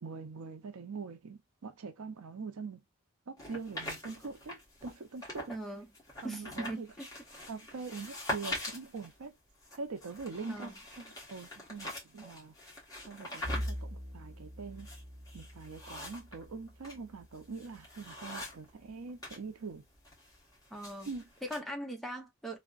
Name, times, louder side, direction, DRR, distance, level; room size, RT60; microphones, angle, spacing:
voice 1, 0.0-2.8 3.3-5.5 6.2-6.9 7.5-9.3 9.8-12.5 13.1-14.9 15.3-19.8 21.1-21.3, right 4 dB, 85° right, 0.6 m, -43 dB
sound 1, 3.4-5.6 5.9-19.4 19.7-21.6, left 1 dB, 15° left, 1.2 m, -44 dB
voice 2, 5.5-5.9 6.2-7.1 10.5-10.7 20.7-21.1 21.4-22.6, right 1 dB, ahead, 0.7 m, -40 dB
Bowed string instrument, 13.4-18.0, equal, 45° right, 1.0 m, -43 dB
3.4 x 2.1 x 2.3 m
head